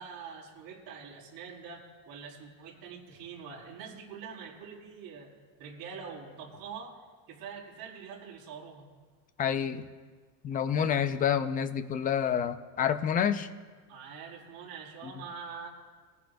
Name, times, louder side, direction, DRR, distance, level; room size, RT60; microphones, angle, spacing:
voice 1, 0.0-5.3 5.6-7.0 7.3-8.9 13.9-15.7, right 6 dB, 50° right, -4 dB, 4.5 m, -44 dB
voice 2, 9.4-9.9 10.4-13.5, left 8 dB, 20° left, 10 dB, 0.3 m, -28 dB
22.0 x 15.0 x 2.6 m, 1.4 s
cardioid pair, 145°, 47 cm